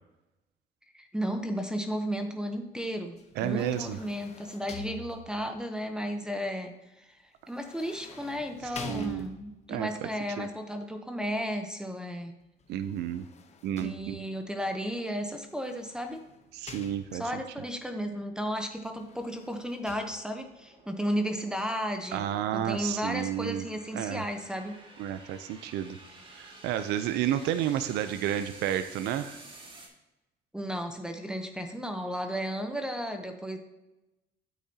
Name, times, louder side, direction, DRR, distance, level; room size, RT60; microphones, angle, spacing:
voice 1, 0.9-3.2 3.4-6.7 7.0-7.1 7.5-12.3 13.8-16.2 17.1-22.2 22.5-24.8 30.5-33.6, equal, 5° right, 6 dB, 0.8 m, -34 dB
sound 1, 3.2-5.6 7.5-9.7 12.6-14.5 15.5-17.4 18.8-20.0, left 5 dB, 40° left, 0.9 m, -47 dB
voice 2, 3.4-4.0 8.6-9.3 9.7-10.1 10.4-10.5 12.7-13.3 13.6-14.2 16.5-17.4 22.1-23.7 23.9-24.2 25.0-26.0 26.4-29.4, right 11 dB, 80° right, 11 dB, 0.5 m, -31 dB
sound 2, 15.4-29.9, right 2 dB, 30° right, 1.8 m, -53 dB
8.8 x 8.3 x 2.8 m, 0.99 s
cardioid pair, 110°, 17 cm